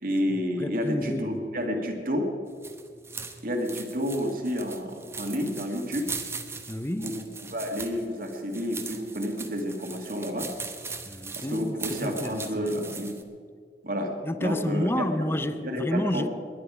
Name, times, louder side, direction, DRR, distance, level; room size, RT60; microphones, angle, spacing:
voice 1, 0.0-2.3 3.4-6.1 7.0-10.5 11.4-13.2 13.8-14.1 14.4-15.1 15.6-16.3, equal, 50° right, 2.0 m, -30 dB
voice 2, 0.6-1.5 6.7-7.2 11.0-12.7 14.2-16.3, left 1 dB, 15° left, 0.5 m, -30 dB
sound 1, 2.5-13.2, right 4 dB, 15° right, 0.9 m, -40 dB
20.5 x 10.0 x 4.9 m
head